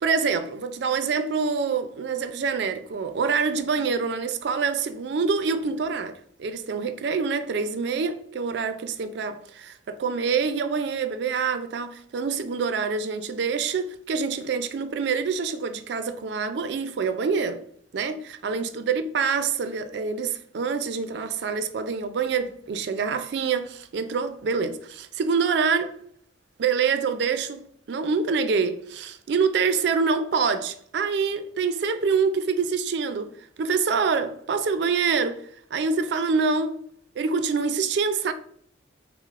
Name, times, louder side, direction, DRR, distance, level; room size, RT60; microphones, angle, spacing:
voice 1, 0.0-17.6 17.9-26.0 26.6-33.3 33.6-35.4 35.7-36.8 37.2-38.3, right 5 dB, 60° right, 0.3 m, -26 dB
5.9 x 2.0 x 2.4 m
head